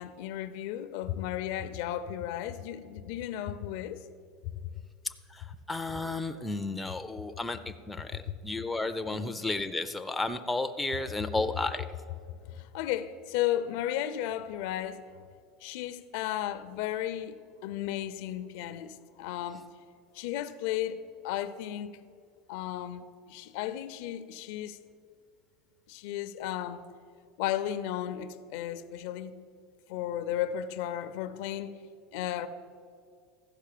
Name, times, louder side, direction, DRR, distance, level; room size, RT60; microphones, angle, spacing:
voice 1, 0.0-4.0 4.4-4.7 8.3-8.4 9.1-9.3 12.5-15.0 15.6-17.4 17.6-19.7 20.1-21.9 22.5-24.8 25.9-26.8 27.4-29.3 29.9-31.7 32.1-32.5, left 11 dB, 65° left, 0.6 m, -34 dB
voice 2, 5.3-11.9, left 2 dB, 5° left, 0.4 m, -33 dB
14.0 x 5.5 x 6.6 m
supercardioid pair, 155°, 0 cm